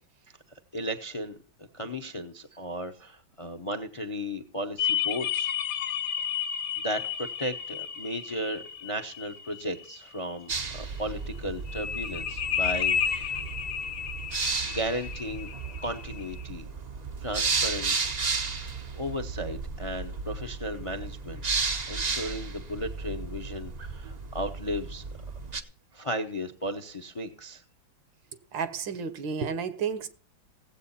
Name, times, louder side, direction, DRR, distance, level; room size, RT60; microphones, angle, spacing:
voice 1, 0.7-1.4 1.7-5.5 6.8-13.4 14.6-15.5 15.8-16.6 17.2-18.0 18.2-18.5 19.0-21.4 21.9-25.0 25.9-27.6, equal, 30° left, 0.6 m, -35 dB
sound 1, 4.8-10.3 11.7-16.4, left 8 dB, 75° left, 1.9 m, -32 dB
sound 2, 10.5-25.6, right 4 dB, 45° right, 0.5 m, -34 dB
voice 2, 28.5-30.1, right 6 dB, 75° right, 1.8 m, -31 dB
16.5 x 8.1 x 4.1 m
omnidirectional pair, 2.1 m